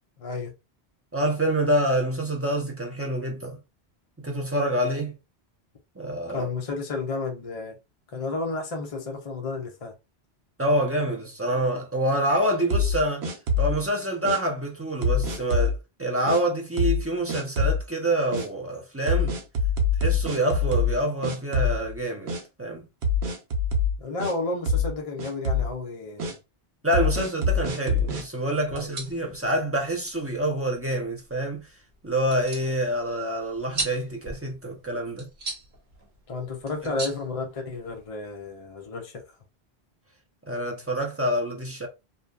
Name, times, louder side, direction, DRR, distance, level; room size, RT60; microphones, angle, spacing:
voice 1, 0.2-0.5 6.3-7.8 8.1-9.9 24.0-26.4 28.7-29.0 36.3-39.2, left 3 dB, 40° left, 0.6 m, -32 dB
voice 2, 1.1-3.6 4.2-5.2 6.0-6.5 10.6-13.3 13.6-19.4 20.0-22.3 22.6-22.9 26.8-31.7 32.0-35.3 40.5-41.9, right 1 dB, 20° right, 0.4 m, -26 dB
sound 1, 12.7-13.8 14.2-14.4 15.0-15.8 16.3-16.4 16.8-17.0 17.3-17.8 18.3-18.5 19.1-21.0 21.2-22.0 22.3-22.4 23.0-24.3 24.7-24.9 25.2-25.7 26.2-26.3 26.9-28.2, left 3 dB, 80° right, 0.9 m, -24 dB
sound 2, 28.6-38.1, right 2 dB, 50° right, 1.0 m, -39 dB
2.6 x 2.3 x 2.2 m
omnidirectional pair, 1.1 m